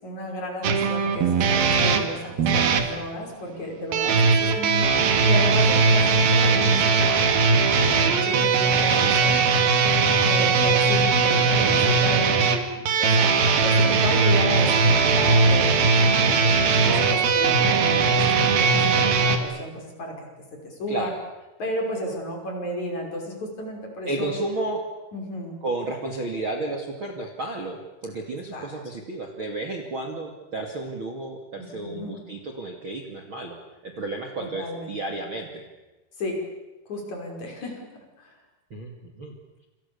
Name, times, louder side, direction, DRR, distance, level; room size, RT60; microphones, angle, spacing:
voice 1, 0.0-7.4 7.8-9.6 10.2-12.3 12.9-13.3 13.6-20.3 20.6-21.1 21.6-24.3 25.1-25.5 28.5-28.7 31.6-32.2 34.4-34.9 36.2-36.4 36.9-37.8 38.2-38.4, left 1 dB, 40° left, 2 dB, 6.7 m, -33 dB
sound 1, 0.6-2.9 3.9-19.4, right 4 dB, 60° right, 3.6 m, -19 dB
voice 2, 4.0-4.3 8.4-9.1 16.2-16.4 20.9-21.2 24.0-24.8 25.6-35.6 38.7-39.4, right 2 dB, 35° right, 3 dB, 2.5 m, -32 dB
28.5 x 27.0 x 7.0 m, 1.1 s
omnidirectional pair, 5.3 m